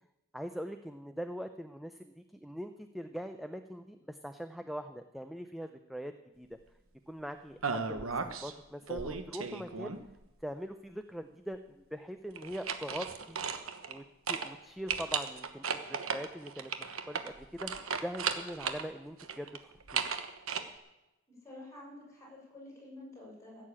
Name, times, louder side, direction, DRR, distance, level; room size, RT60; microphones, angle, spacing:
voice 1, 0.3-6.6 7.1-9.9 10.4-13.4 13.9-20.0, equal, ahead, 8 dB, 0.5 m, -42 dB
sound 1, 7.6-8.5 8.9-10.2 12.4-14.0 14.3-14.5 14.9-18.9 19.2-20.6, right 6 dB, 75° right, 1.2 m, -35 dB
voice 2, 21.3-23.7, left 1 dB, 15° left, -3 dB, 6.6 m, -50 dB
16.0 x 7.6 x 8.6 m, 0.97 s
head